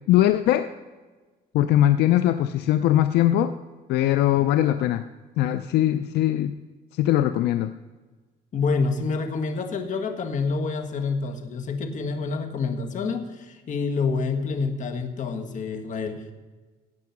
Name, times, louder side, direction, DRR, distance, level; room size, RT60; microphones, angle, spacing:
voice 1, 0.1-0.7 1.5-3.5 3.9-5.0 5.4-6.6 6.9-7.8, left 13 dB, 80° left, 11 dB, 0.5 m, -21 dB
voice 2, 8.5-16.3, left 4 dB, 50° left, 6 dB, 1.7 m, -27 dB
16.5 x 6.1 x 6.0 m, 1.3 s
cardioid pair, 110°, 17 cm